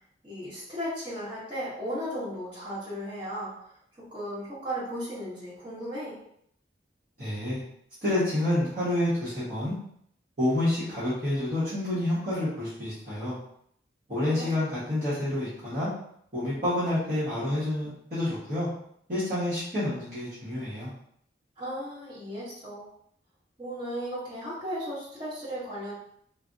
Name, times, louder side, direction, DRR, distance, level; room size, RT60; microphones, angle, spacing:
voice 1, 0.2-3.6 3.9-6.2 14.3-14.6 21.6-22.9 23.6-25.9, equal, 30° right, -11 dB, 1.4 m, -35 dB
voice 2, 7.2-7.6 8.0-9.7 10.4-13.4 14.1-15.9 16.3-18.7 19.1-20.9, left 1 dB, 45° right, -12 dB, 1.1 m, -28 dB
3.2 x 2.1 x 2.5 m, 0.68 s
head